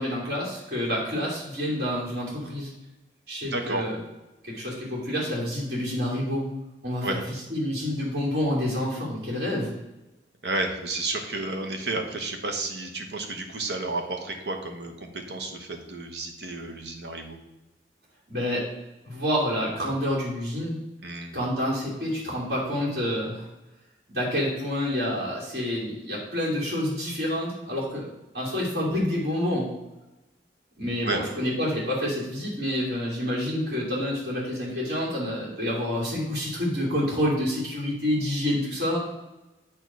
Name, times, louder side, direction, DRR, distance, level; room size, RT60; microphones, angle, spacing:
voice 1, 0.0-2.7 3.3-4.0 4.4-6.5 6.8-7.2 7.5-9.7 18.3-18.6 19.0-20.8 21.3-23.4 24.1-28.1 28.3-29.7 30.8-39.0, left 1 dB, 60° right, -6 dB, 2.8 m, -28 dB
voice 2, 3.4-3.8 7.0-7.2 10.4-17.4 21.0-21.4 31.0-31.2, right 2 dB, 75° right, 3 dB, 1.2 m, -31 dB
8.9 x 3.1 x 6.2 m, 1.0 s
head